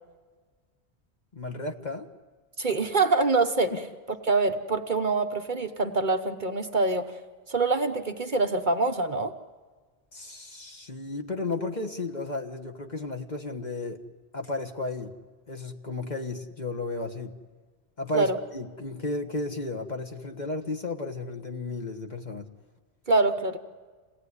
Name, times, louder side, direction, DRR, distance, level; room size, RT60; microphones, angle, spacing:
voice 1, 1.3-2.1 3.7-3.8 10.1-14.0 14.3-15.1 15.5-17.3 18.0-22.5, left 2 dB, 40° left, 5 dB, 1.5 m, -33 dB
voice 2, 2.6-3.7 4.3-7.1 7.5-9.3 18.1-18.4 23.1-23.6, right 3 dB, 45° right, 6 dB, 1.1 m, -25 dB
27.5 x 18.0 x 9.7 m, 1.5 s
omnidirectional pair, 1.1 m